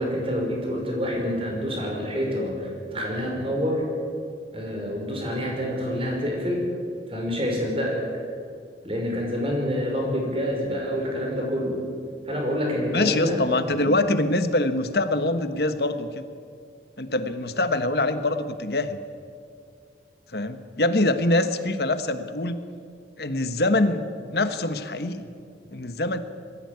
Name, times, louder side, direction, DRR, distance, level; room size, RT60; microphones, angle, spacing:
voice 1, 0.0-3.8 4.5-6.6 7.1-8.0 8.8-11.8 12.3-13.9, equal, 30° right, 0 dB, 5.4 m, -27 dB
voice 2, 12.9-16.2 17.0-19.0 20.3-22.6 23.2-24.0 24.3-25.3 25.7-26.2, left 2 dB, 60° left, 10 dB, 1.3 m, -24 dB
21.0 x 15.5 x 9.7 m, 2.3 s
head